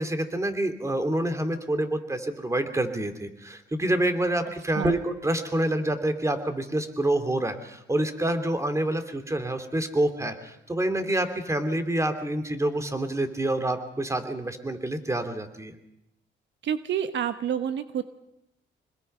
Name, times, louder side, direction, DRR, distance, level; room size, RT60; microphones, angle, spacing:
voice 1, 0.0-15.7, right 1 dB, 15° right, 8 dB, 2.7 m, -27 dB
voice 2, 16.6-18.0, right 9 dB, 70° right, 10 dB, 1.1 m, -28 dB
26.5 x 21.0 x 5.5 m, 0.84 s
cardioid pair, 90°, 20 cm